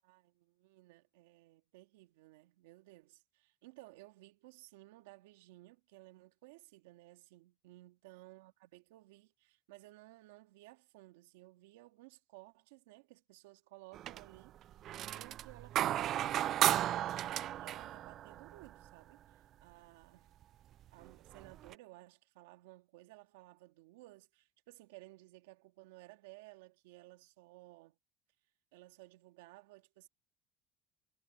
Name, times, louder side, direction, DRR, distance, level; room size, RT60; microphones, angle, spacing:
voice 1, 0.0-14.6 15.1-20.3 20.9-28.0 28.7-30.1, right 19 dB, 90° right, 2.2 m, -57 dB
sound 1, 13.9-14.4 14.7-18.9 20.4-20.5 21.1-21.7, right 12 dB, 50° right, 0.3 m, -34 dB
supercardioid pair, 100°, 0 cm